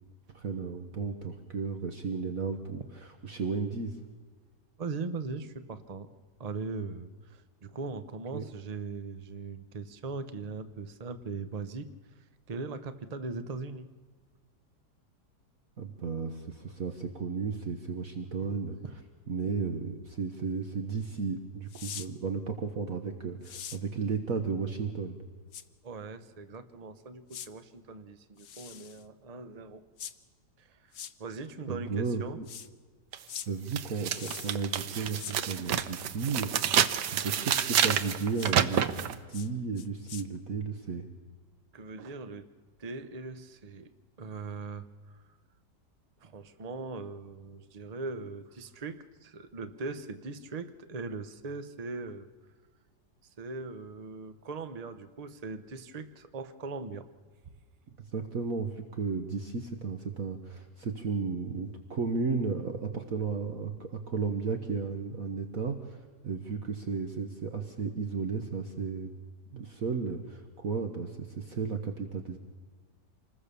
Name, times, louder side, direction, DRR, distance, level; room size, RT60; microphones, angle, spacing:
voice 1, 0.3-4.0 8.3-8.4 15.8-18.8 19.3-25.2 31.7-32.5 33.5-36.8 37.1-38.9 39.3-41.0 58.0-69.1 69.5-72.4, right 5 dB, 55° right, 5 dB, 1.6 m, -34 dB
voice 2, 4.8-6.1 6.4-11.9 12.5-13.9 25.8-29.8 30.6-30.8 31.2-32.4 41.7-42.5 42.8-43.9 44.2-44.9 46.2-52.3 53.4-57.1, right 4 dB, 30° right, 10 dB, 0.9 m, -40 dB
sound 1, 21.7-22.1 23.4-23.8 25.5-25.6 27.3-27.5 28.4-29.0 30.0-30.1 30.9-31.1 32.4-32.7 33.3-33.5 34.1-34.6 35.2-35.4 37.7-37.9 38.3-38.5 39.3-39.5 39.8-40.2, left 8 dB, 55° left, 1.0 m, -43 dB
sound 2, 33.1-33.2 33.7-39.2, right 9 dB, 85° right, 1.5 m, -28 dB
27.0 x 20.0 x 6.9 m, 1.5 s
omnidirectional pair, 1.8 m